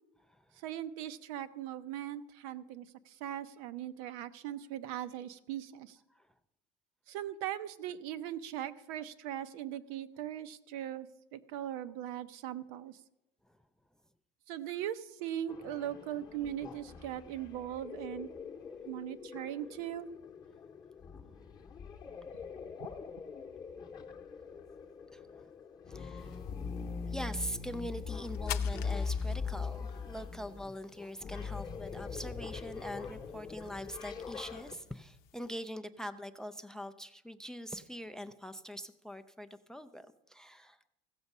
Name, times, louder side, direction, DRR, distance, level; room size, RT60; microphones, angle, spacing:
voice 1, 0.6-6.0 7.1-13.0 14.5-18.3 18.8-20.1 22.8-22.9, right 11 dB, 80° right, 13 dB, 0.7 m, -40 dB
sound 1, 15.5-34.7, left 5 dB, 20° left, 0.9 m, -41 dB
voice 2, 25.1-25.5 25.9-26.4 27.1-40.8, equal, 5° left, 11 dB, 0.3 m, -43 dB
sound 2, 26.2-35.7, left 15 dB, 60° left, 0.6 m, -51 dB
15.5 x 7.0 x 5.4 m, 0.92 s
cardioid pair, 155°, 18 cm